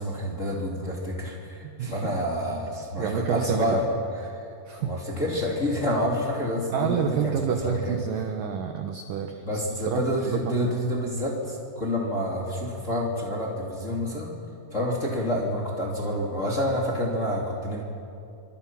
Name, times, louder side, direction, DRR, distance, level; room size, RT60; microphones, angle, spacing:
voice 1, 0.0-4.0 4.3-4.4 4.8-8.0 9.4-14.3 14.7-17.8, equal, 20° left, -3 dB, 2.4 m, -28 dB
voice 2, 1.6-2.2 3.0-3.8 4.2-4.4 4.7-4.9 6.7-10.7, right 8 dB, 70° right, 5 dB, 2.1 m, -29 dB
26.0 x 24.5 x 5.9 m, 2.5 s
omnidirectional pair, 5.2 m